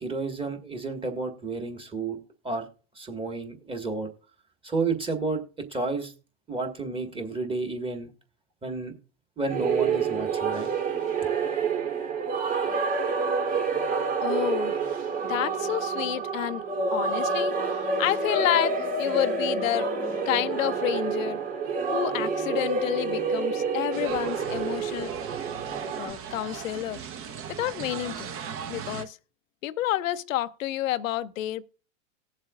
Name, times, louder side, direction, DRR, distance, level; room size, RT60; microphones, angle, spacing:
voice 1, 0.0-2.2 2.4-2.7 2.9-4.1 4.6-6.1 6.5-8.1 8.6-8.9 9.4-10.7, right 3 dB, 15° right, 1.7 m, -31 dB
sound 1, 9.5-26.1, right 4 dB, 70° right, 3.4 m, -28 dB
voice 2, 14.2-14.8 15.2-16.6 16.9-19.9 20.3-21.4 21.9-25.1 25.9-27.0 27.5-28.3 28.7-29.2 29.6-31.7, left 14 dB, 85° left, 0.6 m, -29 dB
sound 2, 23.9-29.0, right 7 dB, 35° right, 1.0 m, -38 dB
19.0 x 7.3 x 2.4 m
hypercardioid pair, 115°, 39 cm